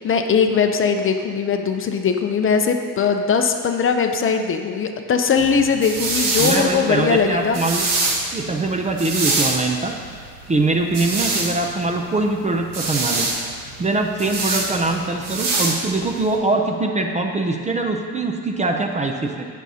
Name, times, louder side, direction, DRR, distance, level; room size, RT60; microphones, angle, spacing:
voice 1, 0.0-7.6, left 6 dB, 35° left, 5 dB, 0.6 m, -20 dB
sound 1, 5.4-16.3, right 3 dB, 55° right, 1.6 m, -25 dB
voice 2, 6.4-7.9 8.3-9.9 10.5-13.3 13.6-19.5, right 2 dB, 20° right, 3 dB, 0.5 m, -22 dB
17.5 x 6.3 x 2.8 m, 2.1 s
cardioid pair, 145°, 38 cm